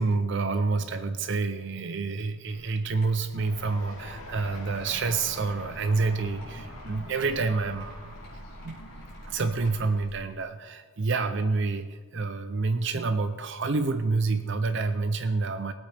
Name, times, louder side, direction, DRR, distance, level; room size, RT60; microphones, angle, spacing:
voice 1, 0.0-8.2 8.6-8.8 9.3-15.7, right 3 dB, 55° right, 9 dB, 0.5 m, -28 dB
sound 1, 2.4-10.3, equal, 45° left, 4.6 m, -49 dB
sound 2, 3.4-9.9, left 1 dB, 85° left, 2.2 m, -44 dB
22.0 x 8.3 x 3.4 m, 1.5 s
head